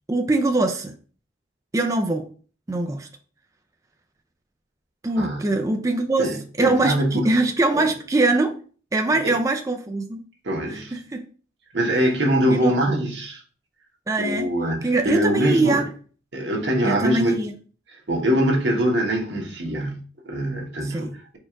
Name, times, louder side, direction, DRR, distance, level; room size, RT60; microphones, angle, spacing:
voice 1, 0.1-0.9 1.7-2.3 2.7-3.1 5.0-8.6 8.9-10.2 10.7-11.2 12.5-12.7 14.1-14.5 14.8-15.9 16.8-17.5 20.8-21.1, right 2 dB, 20° right, 0.3 m, -22 dB
voice 2, 5.2-5.6 6.2-7.3 7.7-7.8 9.1-9.3 10.4-11.0 11.7-13.4 14.2-15.8 16.3-17.4 17.9-21.4, right 1 dB, 85° right, 1.2 m, -23 dB
4.4 x 2.4 x 4.5 m
head